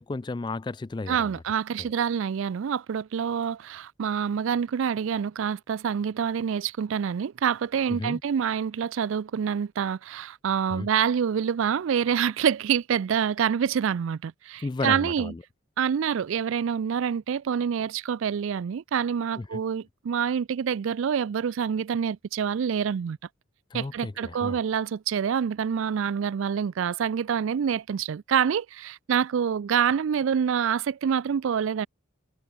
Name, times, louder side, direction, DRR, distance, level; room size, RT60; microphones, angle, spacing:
voice 1, 0.0-1.4 1.8-1.9 7.9-8.2 10.7-10.9 14.6-15.4 19.4-19.6 23.7-24.6, left 3 dB, 20° left, 0.3 m, -33 dB
voice 2, 1.1-15.3 15.8-23.2 23.7-31.9, right 7 dB, 70° right, 0.4 m, -26 dB
head